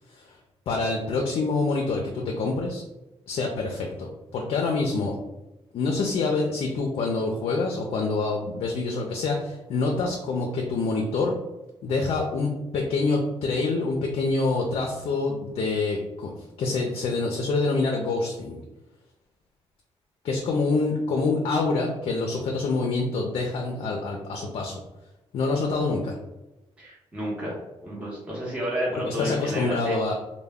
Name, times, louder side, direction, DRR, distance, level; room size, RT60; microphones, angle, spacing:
voice 1, 0.7-2.8 3.3-5.2 5.7-11.3 11.8-16.3 16.6-18.6 20.2-24.8 25.3-26.2 28.9-30.1, left 3 dB, 70° left, 1 dB, 0.4 m, -26 dB
voice 2, 26.8-30.0, equal, 10° right, -5 dB, 0.8 m, -31 dB
2.2 x 2.1 x 3.4 m, 1.0 s
cardioid pair, 90°, 10 cm